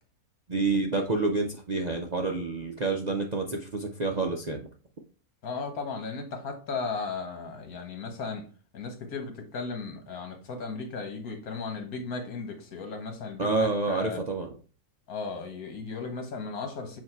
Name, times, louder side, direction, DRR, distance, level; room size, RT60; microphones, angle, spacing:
voice 1, 0.5-4.7 13.4-14.5, right 3 dB, 50° right, 1 dB, 0.5 m, -28 dB
voice 2, 5.4-8.4 8.7-14.2 15.1-17.0, left 4 dB, 80° left, 4 dB, 1.7 m, -36 dB
7.9 x 2.8 x 4.4 m, 0.39 s
omnidirectional pair, 1.5 m